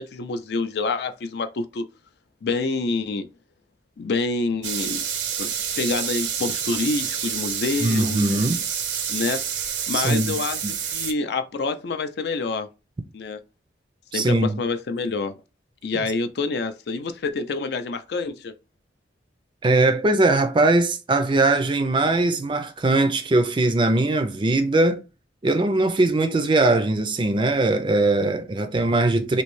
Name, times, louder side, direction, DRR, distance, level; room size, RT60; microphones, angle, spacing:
voice 1, 0.0-1.8 2.4-3.3 4.0-5.0 5.4-5.5 5.8-8.3 9.1-9.4 9.9-12.7 13.1-13.4 14.1-15.3 15.8-18.5, left 3 dB, 65° left, 0.4 m, -27 dB
sound 1, 4.6-11.1, right 8 dB, 75° right, 0.6 m, -28 dB
voice 2, 7.8-8.6 9.9-10.3 10.6-10.7 14.1-14.6 19.6-25.0 25.4-29.4, right 2 dB, 25° right, 0.4 m, -20 dB
3.0 x 2.6 x 3.1 m
head